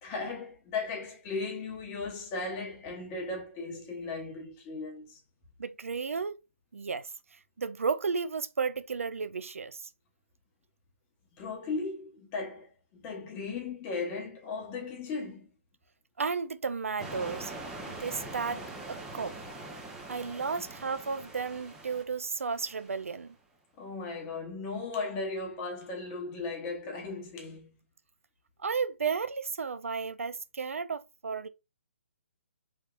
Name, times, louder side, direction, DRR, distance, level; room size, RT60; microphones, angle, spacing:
voice 1, 0.0-5.2 11.4-15.5 23.8-27.7, left 3 dB, 25° left, 0.9 m, -37 dB
voice 2, 5.6-6.4 6.7-7.1 7.6-9.8 16.2-17.5 17.9-19.3 20.1-23.3 28.6-31.5, right 5 dB, 75° right, 0.4 m, -33 dB
sound 1, 17.0-23.2, right 2 dB, 5° right, 0.6 m, -43 dB
3.2 x 3.2 x 2.4 m
figure-of-eight pair, 135°, 7 cm